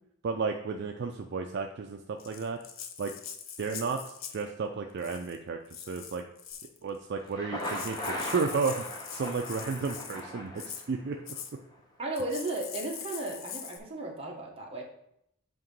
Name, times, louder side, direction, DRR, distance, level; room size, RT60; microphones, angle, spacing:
voice 1, 0.2-2.6 3.0-3.1 3.6-5.6 5.9-6.2 6.8-8.8 9.1-11.2, right 4 dB, 50° right, 4 dB, 0.4 m, -33 dB
Rattle (instrument), 2.2-4.5 5.0-5.4 5.7-6.8 7.3-7.4 7.6-10.2 10.6-10.9 11.3-11.5 12.1-13.8, left 8 dB, 60° left, 0.6 m, -43 dB
Thunder, 7.2-11.2, left 1 dB, 20° left, 1.0 m, -38 dB
voice 2, 12.0-14.8, right 2 dB, 25° right, -2 dB, 1.2 m, -35 dB
7.7 x 2.9 x 5.3 m, 0.75 s
head